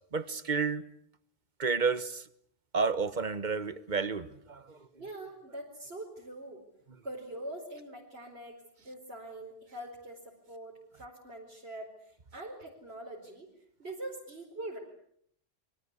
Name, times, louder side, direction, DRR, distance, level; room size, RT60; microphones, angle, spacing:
voice 1, 0.1-0.8 1.6-2.2 2.7-4.6, right 5 dB, 45° right, 14 dB, 1.4 m, -30 dB
voice 2, 5.0-6.7 7.0-13.5 13.8-14.8, right 1 dB, 75° right, -3 dB, 4.9 m, -43 dB
28.0 x 24.0 x 8.3 m, 0.70 s
omnidirectional pair, 1.1 m